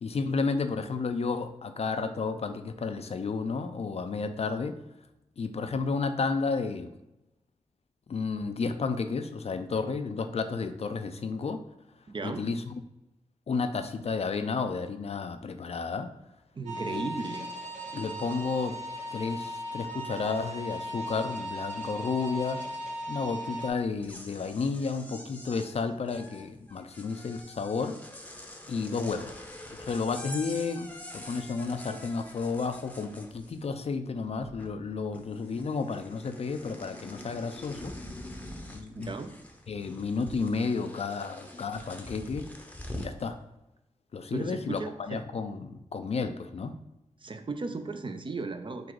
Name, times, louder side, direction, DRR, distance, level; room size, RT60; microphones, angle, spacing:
voice 1, 0.0-4.8 5.4-6.9 8.1-11.6 12.2-12.8 13.5-16.1 16.9-17.1 17.9-18.8 19.1-22.6 23.1-28.0 28.7-29.4 29.7-37.9 38.7-39.1 39.7-42.4 43.0-43.4 44.1-46.8, left 4 dB, 55° left, 8 dB, 0.4 m, -32 dB
voice 2, 12.1-12.5 16.5-17.5 38.9-39.3 44.3-45.2 47.2-48.9, right 3 dB, 40° right, 7 dB, 0.5 m, -36 dB
sound 1, 16.7-23.7, right 1 dB, 80° right, 0.9 m, -37 dB
sound 2, 24.0-33.9 34.2-34.9 35.1-43.2, left 1 dB, 10° left, 0.7 m, -45 dB
3.8 x 2.4 x 4.6 m, 0.93 s
cardioid pair, 45°, 13 cm